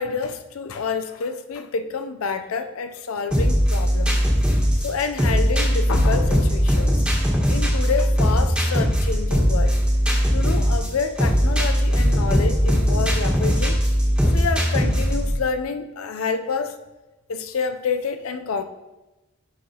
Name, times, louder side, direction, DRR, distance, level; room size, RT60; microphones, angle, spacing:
voice 1, 0.0-4.2 4.8-7.0 7.5-9.8 10.3-13.8 14.3-16.8 17.3-18.6, left 5 dB, 85° left, 9 dB, 0.5 m, -28 dB
sound 1, 3.3-15.3, equal, 5° right, 1.3 m, -20 dB
10.5 x 4.7 x 2.9 m, 1.1 s
head